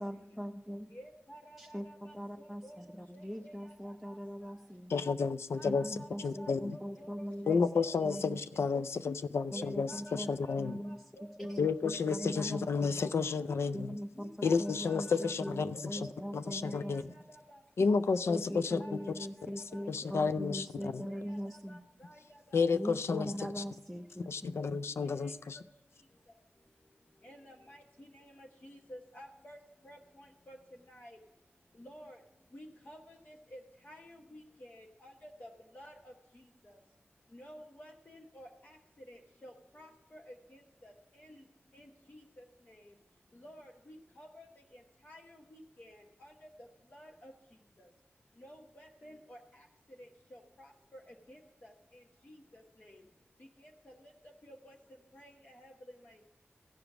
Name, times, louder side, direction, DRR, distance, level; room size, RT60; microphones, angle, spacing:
voice 1, 0.0-0.9 1.6-4.9 5.6-7.6 8.0-8.4 9.5-10.3 10.6-11.0 11.4-13.0 13.7-17.2 18.3-21.8 22.7-24.8, equal, ahead, 1 dB, 0.5 m, -41 dB
voice 2, 0.9-4.2 4.5-4.7 5.6-8.6 9.5-12.5 12.8-13.1 13.4-13.5 14.1-17.6 18.4-23.3 25.0-25.4 27.2-30.6 30.9-31.2 31.8-32.2 32.5-36.8 37.3-38.8 39.1-41.4 41.7-42.9 43.3-44.5 44.7-47.3 47.8-47.9 48.4-49.7 50.0-53.0 53.6-54.1 54.4-54.8 55.1-55.7 56.0-56.2, equal, 45° left, -1 dB, 1.0 m, -53 dB
voice 3, 4.9-6.8 7.5-10.8 11.6-14.0 14.4-16.1 16.3-17.0 17.8-19.0 19.9-21.1 22.5-23.6 24.3-25.6, left 5 dB, 85° left, 12 dB, 0.4 m, -31 dB
14.5 x 5.1 x 6.0 m, 0.93 s
wide cardioid pair, 65°, 4 cm